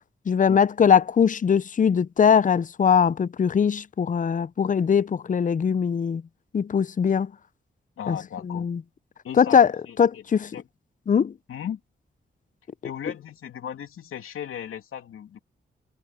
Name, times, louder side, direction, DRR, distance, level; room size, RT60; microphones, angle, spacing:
voice 1, 0.3-6.2 6.5-7.3 8.1-8.2 8.4-8.8 9.4-9.7 10.0-10.5 11.1-11.3, left 7 dB, 40° left, 0.5 m, -21 dB
voice 2, 8.0-8.7 9.2-10.2 10.5-10.7 11.5-11.8 12.8-15.4, left 9 dB, 85° left, 2.8 m, -36 dB
cardioid pair, 50°, 21 cm